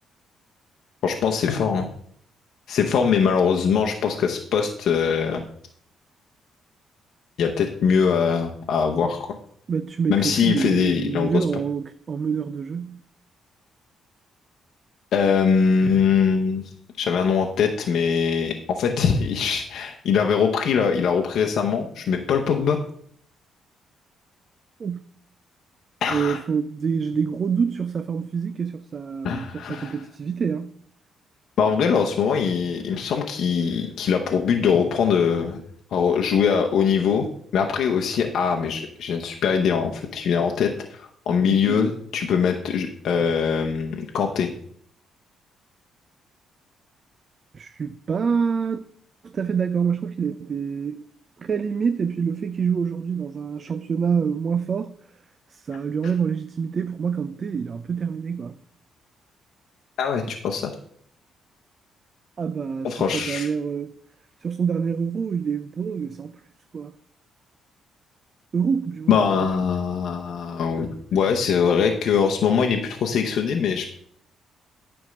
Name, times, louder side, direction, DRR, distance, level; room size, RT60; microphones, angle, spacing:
voice 1, 1.0-1.9 2.7-5.4 7.4-9.2 10.1-11.4 15.1-16.6 17.0-22.8 26.0-26.4 29.2-29.9 31.6-35.6 35.9-37.3 37.5-44.5 60.0-60.7 62.8-63.5 69.1-73.8, left 6 dB, 70° left, 0.8 m, -22 dB
voice 2, 9.7-13.0 24.8-25.0 26.1-30.7 41.5-41.9 47.5-48.8 49.2-51.1 51.4-55.0 55.5-58.6 62.4-63.9 64.4-66.4 66.7-67.0 68.5-69.5, right 6 dB, 45° right, 0.4 m, -26 dB
9.5 x 3.5 x 6.4 m
cardioid pair, 85°, 0 cm